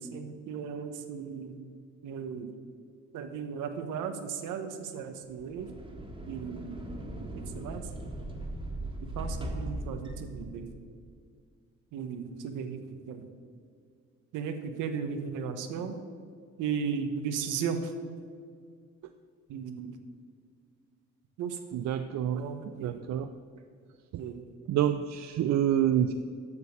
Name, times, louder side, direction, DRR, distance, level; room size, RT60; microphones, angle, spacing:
voice 1, 0.0-1.6 2.0-2.5 3.1-5.7 6.3-6.8 7.2-7.9 9.1-10.7 11.9-12.8 13.1-13.2 14.3-16.0 16.6-17.9 19.5-20.0 21.4-21.8 22.3-23.0 24.2-24.4, right 6 dB, 90° right, 7 dB, 1.0 m, -36 dB
sound 1, 5.3-11.0, right 1 dB, 15° right, 1.6 m, -39 dB
voice 2, 21.7-22.5 22.8-23.3 24.1-24.2 24.7-26.1, right 10 dB, 65° right, 9 dB, 0.5 m, -27 dB
8.3 x 7.0 x 7.1 m, 2.1 s
cardioid pair, 90°, 30 cm